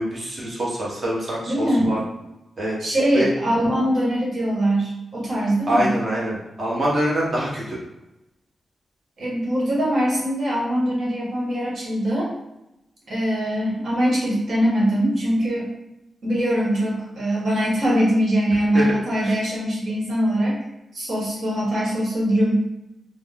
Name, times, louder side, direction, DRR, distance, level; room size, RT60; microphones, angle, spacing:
voice 1, 0.0-2.0 2.6-2.7 3.1-3.3 5.7-7.8 18.7-18.9 19.2-19.4, right 1 dB, 35° right, -5 dB, 1.0 m, -24 dB
voice 2, 1.5-2.0 2.8-5.9 9.2-12.3 13.1-15.7 16.2-20.6 20.9-22.6, equal, 55° right, -5 dB, 1.4 m, -22 dB
3.9 x 2.0 x 3.6 m, 0.93 s
wide cardioid pair, 175°, 0 cm